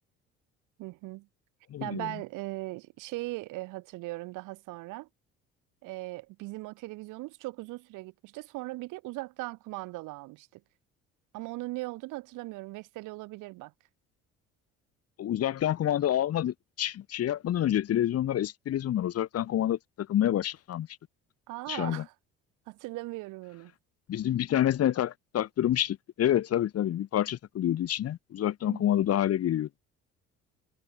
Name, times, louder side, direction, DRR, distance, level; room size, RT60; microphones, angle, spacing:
voice 1, 0.8-1.3 1.8-5.1 5.8-10.6 11.3-13.7 21.5-22.1 22.7-23.7 28.7-28.9, right 21 dB, 75° right, 7.6 m, -39 dB
voice 2, 1.7-2.1 15.2-20.9 21.7-22.0 24.1-29.7, left 11 dB, 50° left, 1.3 m, -28 dB
hypercardioid pair, 65°, 31 cm